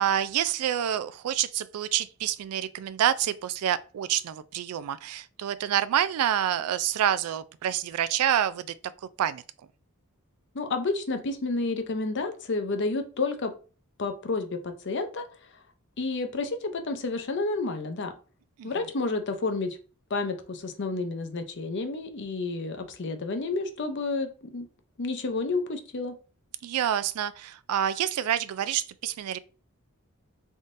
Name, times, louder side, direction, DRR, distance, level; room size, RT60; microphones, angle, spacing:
voice 1, 0.0-8.7 9.2-9.4 18.6-18.7 26.6-29.4, right 10 dB, 80° right, 0.3 m, -27 dB
voice 2, 10.5-13.5 14.0-15.2 16.0-18.1 18.6-19.8 20.1-24.7 25.0-26.1, left 3 dB, 55° left, 0.6 m, -30 dB
3.9 x 3.6 x 2.5 m
head